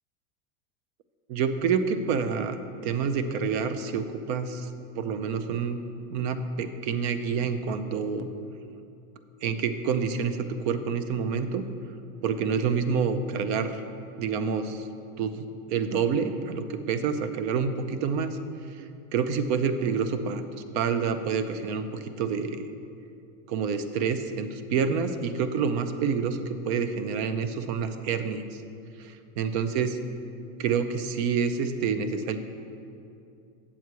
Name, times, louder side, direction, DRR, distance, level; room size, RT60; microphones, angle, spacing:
voice 1, 1.3-4.7 5.0-5.8 6.1-8.3 9.4-11.7 12.2-13.7 14.2-14.8 15.2-18.4 18.7-18.8 19.1-22.7 23.5-28.6 29.0-30.0 30.6-32.4, right 6 dB, 65° right, 10 dB, 0.7 m, -28 dB
8.2 x 7.2 x 4.6 m, 2.6 s
supercardioid pair, 130°, 35 cm